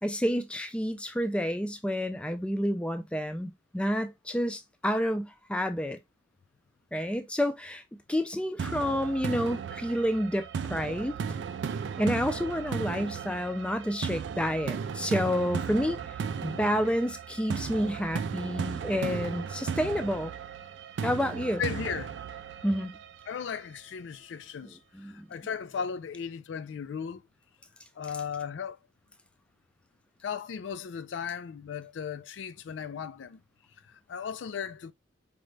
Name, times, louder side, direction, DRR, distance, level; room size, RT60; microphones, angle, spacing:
voice 1, 0.0-6.0 6.9-7.8 8.1-11.2 12.0-16.0 16.4-20.3 21.0-21.6 22.6-22.9 24.9-25.3, equal, 5° left, 0.3 m, -29 dB
sound 1, 8.6-23.6, right 6 dB, 80° right, 0.3 m, -36 dB
voice 2, 21.6-22.2 23.3-27.2 28.0-28.8 30.2-33.4 33.8-34.9, left 7 dB, 80° left, 0.4 m, -36 dB
5.0 x 2.2 x 3.2 m
head